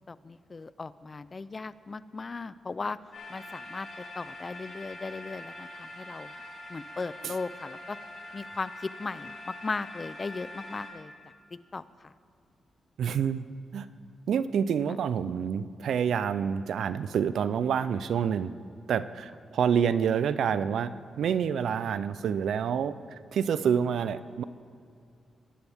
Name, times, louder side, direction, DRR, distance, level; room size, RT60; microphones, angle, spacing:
voice 1, 0.1-3.0 3.3-6.3 6.7-8.0 8.3-11.1 11.5-12.1, left 4 dB, 40° left, 16 dB, 0.5 m, -37 dB
sound 1, 3.1-10.9, left 1 dB, 65° left, 3.7 m, -44 dB
voice 2, 13.0-13.5 13.7-13.9 14.3-18.5 18.9-22.9 23.3-24.4, right 7 dB, 80° right, 14 dB, 0.5 m, -27 dB
21.5 x 11.5 x 3.6 m, 2.3 s
cardioid pair, 70°, 0 cm